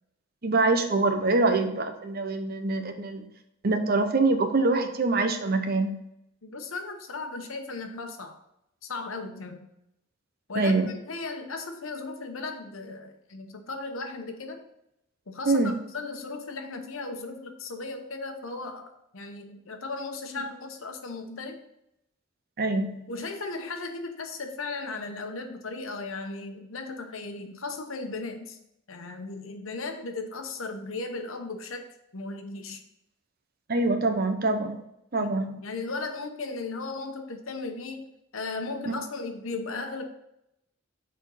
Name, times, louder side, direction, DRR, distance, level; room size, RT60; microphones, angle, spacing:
voice 1, 0.4-3.3 3.6-6.0 10.5-10.9 15.5-15.8 20.4-20.5 22.6-23.0 33.7-34.8 35.1-35.6 38.9-39.0, right 3 dB, 50° right, 7 dB, 0.8 m, -25 dB
voice 2, 6.4-8.4 8.8-9.7 10.5-14.6 15.3-21.6 23.1-28.6 28.9-32.8 35.2-35.3 35.6-38.1 38.3-40.0, left 3 dB, 80° left, 5 dB, 1.0 m, -36 dB
6.2 x 4.3 x 5.5 m, 0.82 s
head